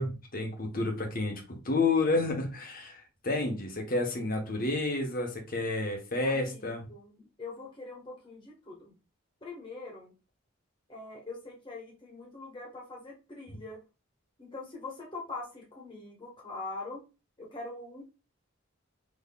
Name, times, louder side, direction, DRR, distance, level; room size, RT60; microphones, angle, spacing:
voice 1, 0.0-6.9, left 2 dB, 45° left, 1.0 m, -30 dB
voice 2, 6.2-8.9 9.4-10.1 10.9-13.8 14.4-17.0 17.4-18.0, left 3 dB, 25° left, 1.4 m, -43 dB
3.6 x 3.1 x 2.3 m
head